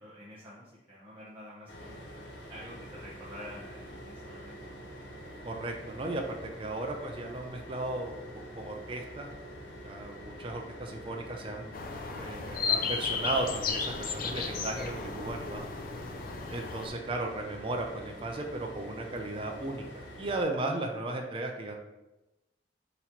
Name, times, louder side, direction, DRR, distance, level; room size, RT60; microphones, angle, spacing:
voice 1, 0.0-2.0 2.5-4.6, equal, 15° right, -10 dB, 0.8 m, -48 dB
sound 1, 1.7-20.4, equal, 90° left, 0.8 m, -46 dB
voice 2, 5.4-9.3 9.8-11.7 12.1-15.7 16.5-21.8, right 2 dB, 30° right, 2 dB, 0.4 m, -35 dB
sound 2, 11.7-16.9, left 5 dB, 55° left, 0.4 m, -34 dB
4.0 x 2.9 x 4.4 m, 0.98 s
head